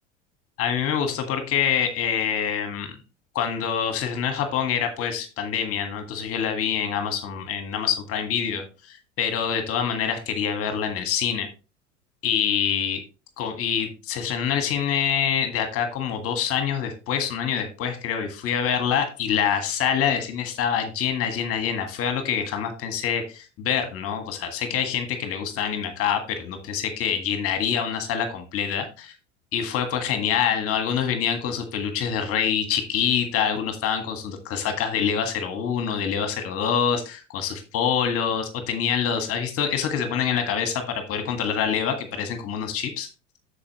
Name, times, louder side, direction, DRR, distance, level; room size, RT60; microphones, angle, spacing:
voice 1, 0.6-2.9 3.3-11.5 12.2-13.0 13.4-29.1 29.5-43.1, left 8 dB, 40° left, 7 dB, 1.6 m, -26 dB
8.5 x 6.9 x 3.0 m, 0.31 s
figure-of-eight pair, 75°, 37 cm